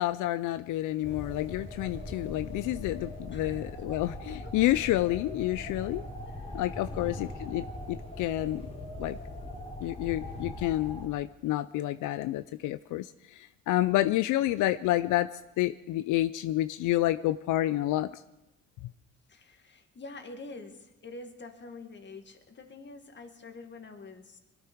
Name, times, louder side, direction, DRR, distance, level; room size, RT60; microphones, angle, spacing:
voice 1, 0.0-6.0 6.5-8.6 9.0-9.2 9.8-15.3 15.6-18.1, left 15 dB, 85° left, 12 dB, 0.5 m, -29 dB
sound 1, 1.0-11.1, left 1 dB, 20° left, 3.3 m, -40 dB
voice 2, 3.3-3.8 4.4-4.5 6.2-6.5 6.9-7.1 19.3-24.4, left 3 dB, 35° left, 5 dB, 1.9 m, -46 dB
21.0 x 12.5 x 4.6 m, 0.94 s
cardioid pair, 90°, 30 cm